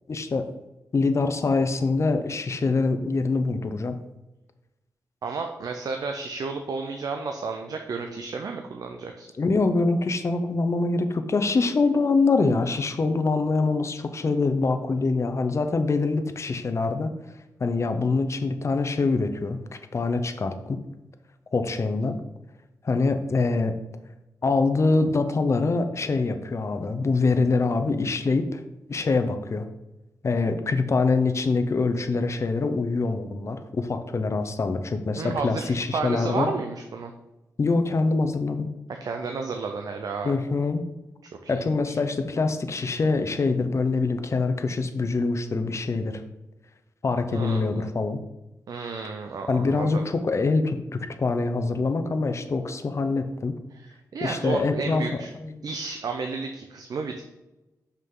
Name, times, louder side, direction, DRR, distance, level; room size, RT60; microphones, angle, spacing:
voice 1, 0.1-0.5 0.9-3.9 9.4-17.1 17.6-19.6 19.9-20.8 21.5-22.2 22.8-23.8 24.4-28.6 28.9-29.7 30.2-36.5 37.6-38.7 40.2-40.8 41.5-46.2 47.0-48.2 49.5-53.6 54.2-55.6, left 3 dB, 45° left, 8 dB, 0.7 m, -24 dB
voice 2, 5.2-9.3 35.2-35.6 35.9-37.1 38.9-40.3 41.4-42.0 47.3-47.6 48.7-50.0 53.7-55.3 55.6-57.2, right 4 dB, 70° right, 4 dB, 0.6 m, -32 dB
6.0 x 5.5 x 3.8 m, 1.0 s
cardioid pair, 80°, 7 cm